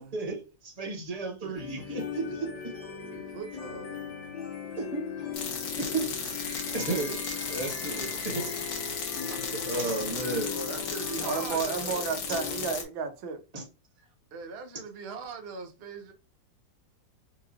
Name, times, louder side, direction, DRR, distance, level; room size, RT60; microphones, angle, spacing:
voice 1, 0.0-2.5 4.8-5.3 5.8-6.2 6.7-7.2 7.5-8.5 9.3-10.6 13.5-13.6, right 3 dB, 25° right, 1.0 m, -33 dB
voice 2, 1.4-2.1 2.4-2.5 2.9-4.3 10.5-12.1 14.3-16.1, right 4 dB, 75° right, 0.5 m, -41 dB
sound 1, 1.5-12.7, left 6 dB, 65° left, 1.5 m, -39 dB
sound 2, 5.3-12.8, left 6 dB, 80° left, 1.8 m, -35 dB
sound 3, 6.0-10.9, left 2 dB, 45° left, 1.2 m, -46 dB
voice 3, 11.2-13.4, right 5 dB, 90° right, 1.5 m, -32 dB
4.6 x 2.4 x 2.8 m
omnidirectional pair, 2.1 m